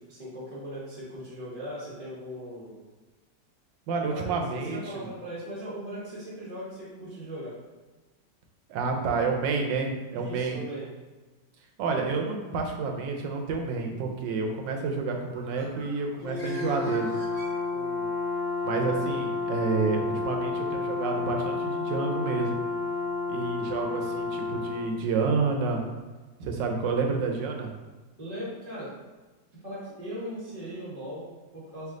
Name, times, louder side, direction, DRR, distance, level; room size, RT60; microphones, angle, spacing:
voice 1, 0.1-2.8 4.1-7.5 10.1-10.9 17.7-18.1 28.2-28.9 29.6-31.9, equal, 25° right, -8 dB, 0.9 m, -39 dB
voice 2, 3.9-5.1 8.7-10.6 11.8-17.1 18.6-22.6 23.3-25.8 26.4-27.7, right 4 dB, 75° right, 2 dB, 1.3 m, -29 dB
Bird, 15.2-18.2, equal, 50° right, 1.0 m, -45 dB
Brass instrument, 16.2-24.9, left 4 dB, 80° left, 1.4 m, -31 dB
3.3 x 3.1 x 3.7 m, 1.2 s
omnidirectional pair, 2.0 m